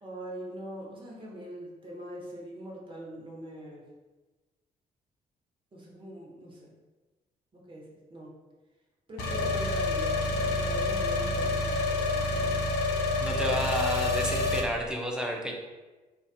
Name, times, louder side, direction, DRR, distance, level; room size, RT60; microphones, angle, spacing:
voice 1, 0.0-3.8 5.7-6.7 7.5-8.3 9.1-12.2, right 1 dB, 25° right, -3 dB, 0.8 m, -43 dB
sound 1, 9.2-14.6, left 3 dB, 55° left, 0.5 m, -28 dB
voice 2, 13.2-15.5, equal, 5° right, -1 dB, 0.4 m, -31 dB
2.5 x 2.3 x 2.3 m, 1.2 s
figure-of-eight pair, 45°, 21 cm